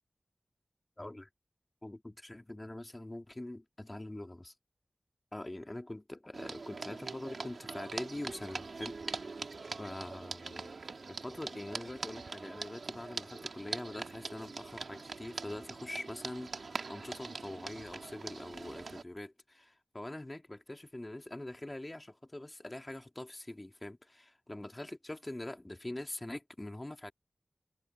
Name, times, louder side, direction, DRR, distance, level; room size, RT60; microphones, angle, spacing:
voice 1, 1.0-1.3 1.8-4.5 5.3-9.4 9.8-10.7 11.1-27.1, left 1 dB, 30° left, 2.6 m, -44 dB
sound 1, 6.3-19.0, right 4 dB, 85° right, 2.0 m, -43 dB
cardioid pair, 45°, 0 cm